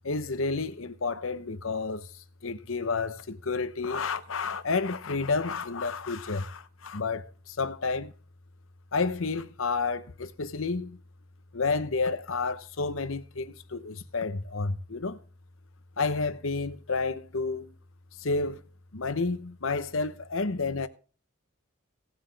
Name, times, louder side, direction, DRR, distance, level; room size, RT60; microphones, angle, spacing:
voice 1, 0.0-2.1 2.4-8.1 8.9-11.0 11.5-15.2 16.0-17.7 18.2-18.6 18.9-20.9, left 4 dB, 65° left, 0.9 m, -30 dB
17.5 x 7.7 x 3.4 m
head